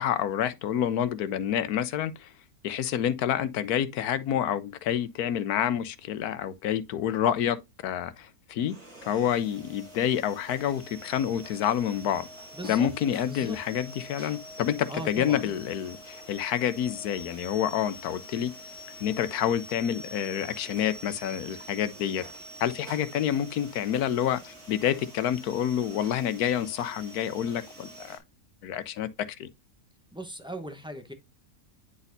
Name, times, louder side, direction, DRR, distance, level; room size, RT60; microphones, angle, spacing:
voice 1, 0.0-2.3 2.6-7.6 7.8-8.7 9.0-12.3 12.6-18.5 19.0-22.2 22.6-28.2 28.6-29.1 29.4-29.5, left 10 dB, 90° left, 1.2 m, -28 dB
sound 1, 8.6-28.2, equal, 75° right, 3.2 m, -46 dB
voice 2, 12.5-12.9 13.3-13.6 14.9-15.5 30.1-31.1, right 1 dB, 5° right, 0.9 m, -38 dB
9.9 x 4.1 x 2.6 m
omnidirectional pair, 1.6 m